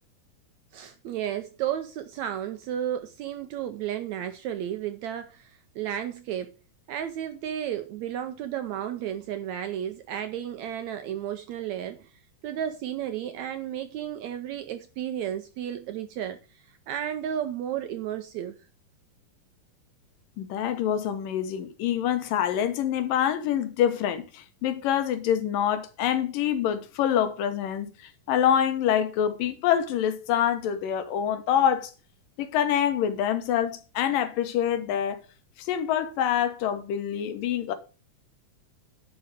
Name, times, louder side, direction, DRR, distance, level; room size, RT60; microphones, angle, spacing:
voice 1, 0.7-6.5 6.9-12.1 12.4-18.6, right 10 dB, 80° right, 1.7 m, -33 dB
voice 2, 20.4-31.9 32.4-35.2 35.6-37.7, left 9 dB, 80° left, 2.8 m, -26 dB
11.0 x 5.1 x 6.7 m
omnidirectional pair, 3.9 m